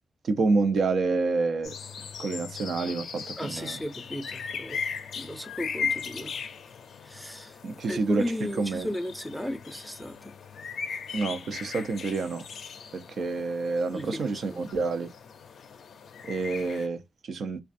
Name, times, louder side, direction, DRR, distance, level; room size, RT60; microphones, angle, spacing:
voice 1, 0.2-1.7 2.2-3.8 7.6-8.2 8.6-8.9 11.1-12.5 12.9-15.1 16.3-17.6, right 3 dB, 70° right, 0.4 m, -28 dB
sound 1, 1.6-16.9, left 6 dB, 75° left, 0.4 m, -38 dB
voice 2, 3.4-4.8 5.2-6.4 7.0-7.6 7.9-10.3 13.9-14.6, left 1 dB, ahead, 0.5 m, -35 dB
2.4 x 2.2 x 2.5 m
wide cardioid pair, 120°, 0 cm